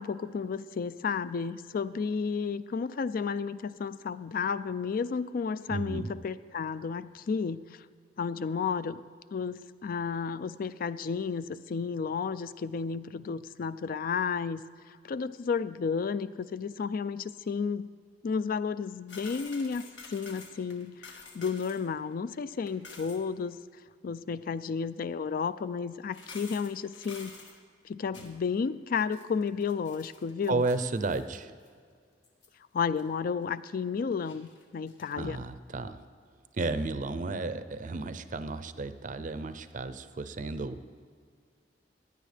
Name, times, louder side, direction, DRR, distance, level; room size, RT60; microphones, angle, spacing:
voice 1, 0.0-7.8 8.2-9.0 9.3-14.6 15.0-17.9 18.2-19.8 20.1-23.6 24.0-27.3 27.8-30.6 32.7-35.4, left 5 dB, 50° left, 16 dB, 0.3 m, -32 dB
voice 2, 5.7-6.1 30.5-31.5 35.1-36.0 36.5-40.8, right 3 dB, 45° right, 11 dB, 0.5 m, -33 dB
sound 1, 19.1-21.9 22.1-22.2 22.5-23.2 25.1-25.2 26.0-27.5 28.1-28.5 29.0-31.4 31.6-31.7 32.2-32.5 33.0-33.1 34.1-35.1, left 4 dB, 80° left, 1.5 m, -49 dB
16.0 x 10.0 x 3.3 m, 2.1 s
head